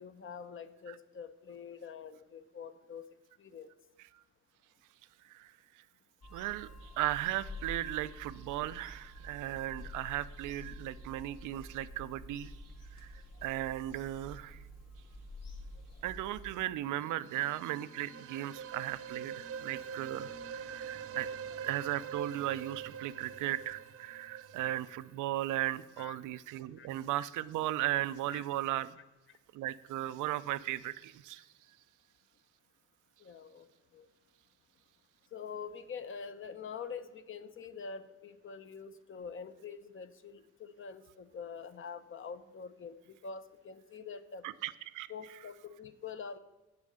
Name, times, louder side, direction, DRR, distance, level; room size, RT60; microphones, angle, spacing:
voice 1, 0.0-3.0 3.4-3.7 26.0-26.2 26.8-26.9 28.3-28.4 29.3-29.4 33.2-33.7 33.9-34.1 35.3-44.5 45.1-46.4, left 6 dB, 40° left, 11 dB, 0.8 m, -45 dB
Bird vocalization bird call bird song / Telephone, 6.2-16.4, left 1 dB, 60° left, 1.8 m, -49 dB
voice 2, 6.3-12.6 12.9-14.6 16.0-29.0 29.5-31.4 44.4-45.1, right 14 dB, 85° right, 16 dB, 0.5 m, -36 dB
sound 1, 16.8-25.7, right 7 dB, 50° right, 0.8 m, -44 dB
8.2 x 7.0 x 6.5 m, 1.1 s
cardioid pair, 90°, 30 cm